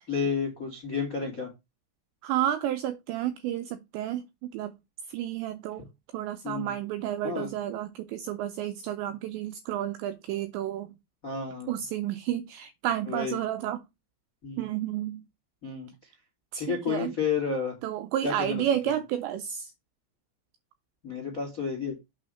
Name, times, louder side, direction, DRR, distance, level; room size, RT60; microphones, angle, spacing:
voice 1, 0.1-1.5 6.4-6.7 7.2-7.5 11.2-11.8 13.1-13.4 14.4-14.6 15.6-16.1 16.6-17.7 18.2-18.9 21.0-22.0, left 6 dB, 65° left, 0.8 m, -31 dB
voice 2, 2.2-4.7 5.1-5.8 6.1-10.9 11.7-13.8 14.6-15.2 16.5-17.1 17.8-19.7, right 11 dB, 85° right, 2.5 m, -31 dB
8.6 x 3.2 x 6.3 m
omnidirectional pair, 5.7 m